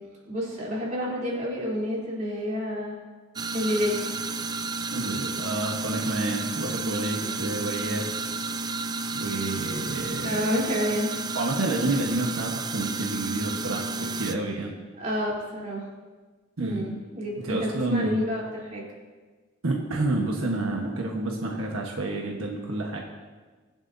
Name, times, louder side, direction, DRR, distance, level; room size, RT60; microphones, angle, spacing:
voice 1, 0.2-3.0 3.5-4.0 7.0-7.5 10.2-11.1 15.0-15.8 16.6-18.8, equal, 35° right, -6 dB, 3.4 m, -29 dB
sound 1, 3.4-14.4, right 3 dB, 20° right, 0.3 m, -32 dB
voice 2, 4.9-8.1 9.1-10.4 11.3-14.7 16.6-16.9 17.4-18.2 19.6-23.0, right 2 dB, 90° right, -1 dB, 1.3 m, -29 dB
23.5 x 7.9 x 2.7 m, 1.4 s
head